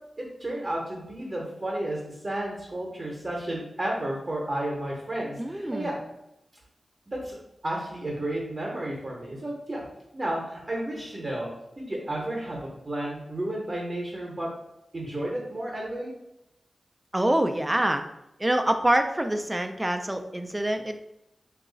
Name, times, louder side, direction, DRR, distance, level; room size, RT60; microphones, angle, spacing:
voice 1, 0.2-6.0 7.1-7.4 7.6-9.8 10.1-11.5 11.8-14.5 14.9-16.1, right 1 dB, 35° right, -4 dB, 0.8 m, -32 dB
voice 2, 5.4-5.9 17.1-18.0 18.4-21.0, right 1 dB, 15° right, 6 dB, 0.3 m, -25 dB
2.9 x 2.3 x 3.8 m, 0.86 s
wide cardioid pair, 95°, 0 cm